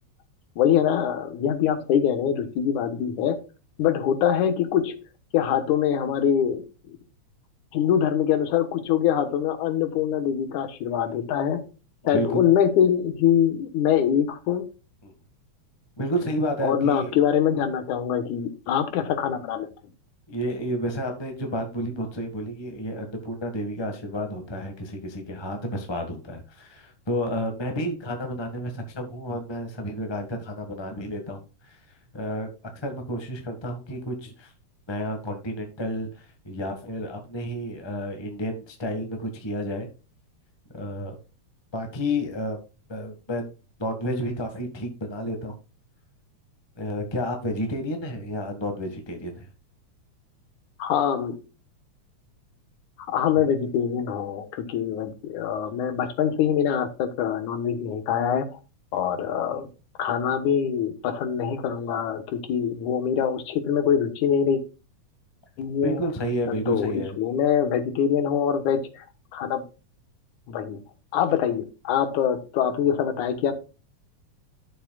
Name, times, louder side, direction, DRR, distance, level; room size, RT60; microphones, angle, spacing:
voice 1, 0.6-3.4 3.8-5.0 5.3-7.0 7.7-11.6 12.0-14.6 16.6-19.7 50.8-51.4 53.1-58.5 58.9-59.7 60.0-64.6 65.6-66.0 66.5-69.0 69.3-69.6 70.5-70.8 71.1-73.5, left 8 dB, 90° left, 2.7 m, -24 dB
voice 2, 16.0-17.1 20.3-31.8 32.1-34.5 34.9-39.9 40.7-41.1 41.7-42.6 42.9-43.5 43.8-45.5 46.8-49.5 65.8-67.2, equal, 15° left, 1.0 m, -31 dB
12.0 x 6.9 x 2.3 m
omnidirectional pair, 3.3 m